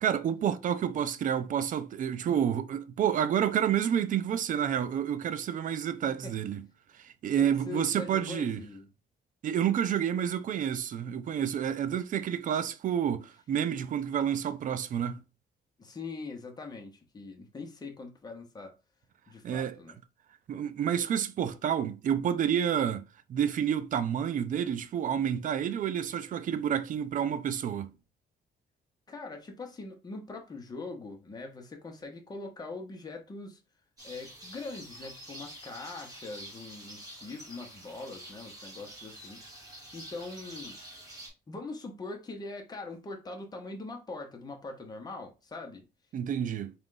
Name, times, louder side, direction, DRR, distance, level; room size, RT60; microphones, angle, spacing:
voice 1, 0.0-6.6 7.0-8.6 9.4-15.2 19.4-19.8 20.5-27.9 46.1-46.7, right 9 dB, 50° right, 0.4 m, -29 dB
voice 2, 7.4-8.9 15.8-18.7 19.3-20.0 29.1-33.6 34.0-39.4 39.9-40.8 41.5-45.8, left 3 dB, 20° left, 0.9 m, -42 dB
sound 1, 34.0-41.3, right 1 dB, 20° right, 1.9 m, -47 dB
3.8 x 2.4 x 3.8 m
cardioid pair, 135°, 17 cm